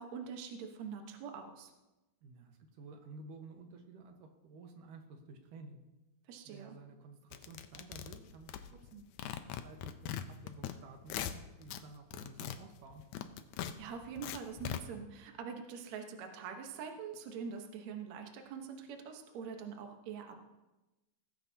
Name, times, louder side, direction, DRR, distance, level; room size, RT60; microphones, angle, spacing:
voice 1, 0.0-1.7 6.3-6.8 13.7-20.4, right 6 dB, 65° right, 4 dB, 2.3 m, -44 dB
voice 2, 2.2-5.8 6.4-13.0, right 3 dB, 85° right, 4 dB, 2.9 m, -53 dB
sound 1, 7.3-8.9 9.2-10.7 11.0-11.8 12.1-14.8, left 10 dB, 75° left, 2.0 m, -41 dB
19.0 x 15.0 x 2.8 m, 1.0 s
omnidirectional pair, 3.7 m